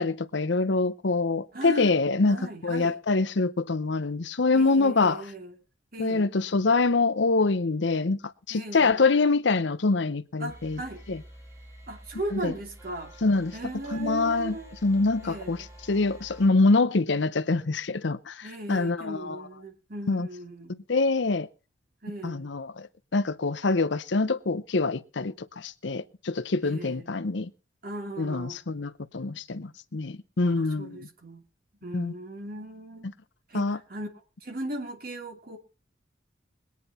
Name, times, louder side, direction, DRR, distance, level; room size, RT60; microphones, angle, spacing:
voice 1, 0.0-2.4 2.6-5.2 6.0-8.2 8.5-10.8 11.1-11.2 12.3-12.5 13.2-13.5 13.9-14.6 14.8-15.6 15.9-19.4 20.1-20.3 20.7-21.5 22.2-22.9 23.1-27.5 28.2-31.1 31.9-32.1 33.5-33.8, left 3 dB, 65° left, 0.7 m, -25 dB
voice 2, 1.5-1.9 2.2-3.0 4.5-5.6 5.9-6.3 8.5-9.0 10.4-11.0 11.9-13.1 13.5-14.7 15.2-15.7 18.4-20.7 22.0-22.5 26.6-27.1 27.8-28.6 30.4-31.4 31.8-33.1 33.5-34.1 34.4-35.6, right 1 dB, 50° right, 2.8 m, -37 dB
sound 1, 10.5-16.5, right 1 dB, 15° right, 5.1 m, -49 dB
21.5 x 9.5 x 4.2 m
head